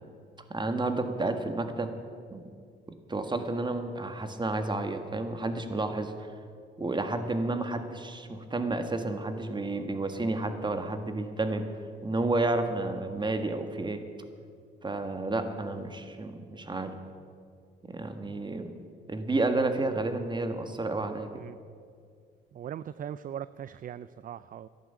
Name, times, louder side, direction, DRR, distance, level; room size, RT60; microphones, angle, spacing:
voice 1, 0.5-1.9 2.3-2.4 3.1-6.3 6.8-11.7 12.0-14.0 14.8-17.0 17.8-18.8 19.1-21.3, right 2 dB, 25° right, 7 dB, 1.6 m, -31 dB
voice 2, 22.5-24.7, right 9 dB, 45° right, 16 dB, 0.4 m, -40 dB
13.5 x 11.0 x 8.2 m, 2.2 s
cardioid pair, 90°, 20 cm